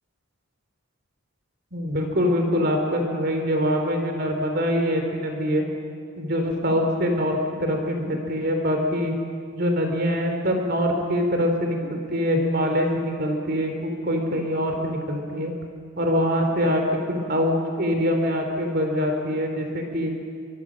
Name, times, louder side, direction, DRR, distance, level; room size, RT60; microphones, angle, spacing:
voice 1, 1.7-5.6 6.2-9.1 9.5-15.5 16.0-20.1, equal, 45° right, 3 dB, 3.5 m, -24 dB
24.0 x 23.5 x 6.4 m, 2.3 s
head